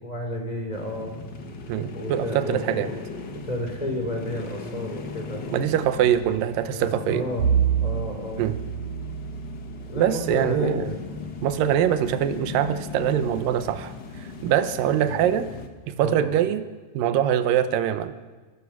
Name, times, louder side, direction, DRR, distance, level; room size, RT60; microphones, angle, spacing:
voice 1, 0.0-1.1 1.9-3.0 3.3-5.5 6.7-7.5 7.8-8.5 9.9-11.0 15.0-15.3 16.0-16.3, left 1 dB, 10° left, 3 dB, 3.1 m, -31 dB
sound 1, 0.7-15.7, left 5 dB, 45° left, 1.4 m, -38 dB
voice 2, 1.7-2.9 5.5-7.3 8.4-8.6 10.0-10.9 11.4-15.5 15.9-16.7 16.9-18.1, right 10 dB, 75° right, 10 dB, 2.6 m, -23 dB
Bowed string instrument, 7.4-12.0, right 8 dB, 60° right, 3.1 m, -28 dB
23.5 x 20.5 x 6.0 m, 1.3 s
omnidirectional pair, 4.1 m